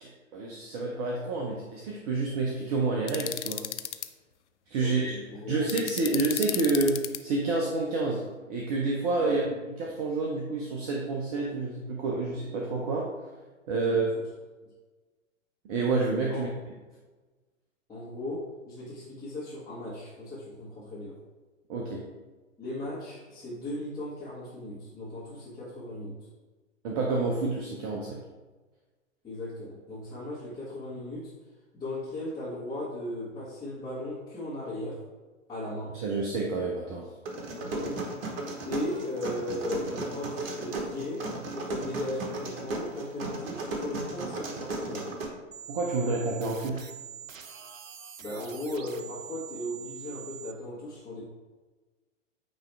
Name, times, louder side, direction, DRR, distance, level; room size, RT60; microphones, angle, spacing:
voice 1, 0.0-3.6 4.7-5.1 5.5-8.2 8.5-9.4 9.8-13.1 13.7-14.1 15.6-16.5 21.7-22.0 26.8-28.2 35.9-37.1 45.7-46.9, right 3 dB, 30° right, -1 dB, 0.7 m, -29 dB
sound 1, 3.1-4.1 5.7-7.2, left 11 dB, 65° left, 0.5 m, -33 dB
voice 2, 4.8-5.7 9.2-9.4 13.8-14.1 16.3-16.4 17.9-21.2 22.6-26.3 29.2-31.3 31.7-35.0 35.5-36.0 37.6-38.1 38.7-45.1 48.2-51.2, left 1 dB, 10° left, -12 dB, 1.7 m, -37 dB
sound 2, 37.3-45.2, right 2 dB, 50° right, 1.2 m, -35 dB
sound 3, 45.5-50.5, right 9 dB, 85° right, 0.5 m, -44 dB
8.8 x 3.1 x 3.5 m, 1.3 s
figure-of-eight pair, 110°, 38 cm